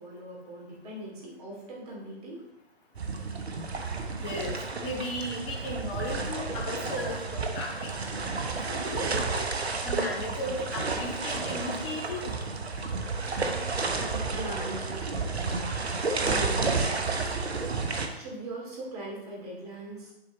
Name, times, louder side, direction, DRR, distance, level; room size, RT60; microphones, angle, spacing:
voice 1, 0.0-2.4 14.0-15.5 16.2-17.3 18.1-20.1, right 1 dB, 35° right, -3 dB, 2.5 m, -40 dB
sound 1, 3.0-18.1, right 4 dB, 70° right, 1.0 m, -31 dB
voice 2, 4.2-8.0 8.7-9.4 9.8-12.3, left 1 dB, 30° left, -3 dB, 1.7 m, -35 dB
10.5 x 4.3 x 3.0 m, 0.90 s
figure-of-eight pair, 135°, 32 cm